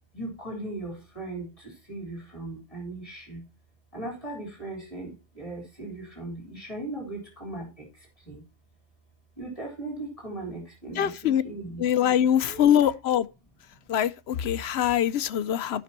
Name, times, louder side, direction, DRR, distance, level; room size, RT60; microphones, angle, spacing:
voice 1, 0.1-1.5 1.9-3.4 3.9-5.1 5.4-7.7 8.3-8.4 9.4-11.8 12.5-12.9, right 2 dB, 30° left, 3.8 m, -38 dB
voice 2, 11.0-11.4 11.8-13.3 13.9-15.8, left 10 dB, 65° left, 0.8 m, -23 dB
15.0 x 5.9 x 2.8 m
omnidirectional pair, 1.2 m